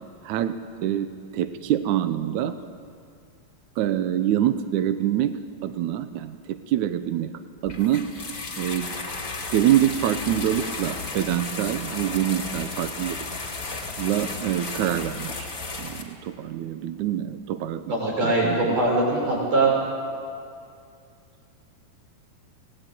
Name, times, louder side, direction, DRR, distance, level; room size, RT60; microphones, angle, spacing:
voice 1, 0.2-2.6 3.8-8.1 8.6-8.9 9.5-13.2 14.0-15.5 15.8-18.8, right 11 dB, 75° right, 9 dB, 1.9 m, -26 dB
sound 1, 7.6-16.0, left 3 dB, 25° left, 2.3 m, -34 dB
voice 2, 17.9-19.7, right 2 dB, 60° right, -2 dB, 8.1 m, -22 dB
25.5 x 19.0 x 9.1 m, 2.3 s
omnidirectional pair, 4.3 m